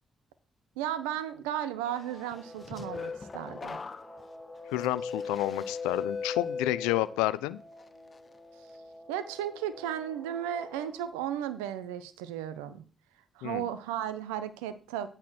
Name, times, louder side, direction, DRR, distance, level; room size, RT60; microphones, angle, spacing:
voice 1, 0.8-3.8 9.1-12.8 13.4-15.1, right 10 dB, 85° right, 12 dB, 0.6 m, -35 dB
Guitar, 1.6-11.0, equal, 5° left, 2.4 m, -51 dB
sound 1, 2.3-7.3 7.8-8.2, left 5 dB, 40° left, 0.7 m, -38 dB
voice 2, 4.7-7.6 13.4-13.6, left 16 dB, 85° left, 17 dB, 0.3 m, -30 dB
8.1 x 4.3 x 6.0 m, 0.38 s
hypercardioid pair, 45°, 0 cm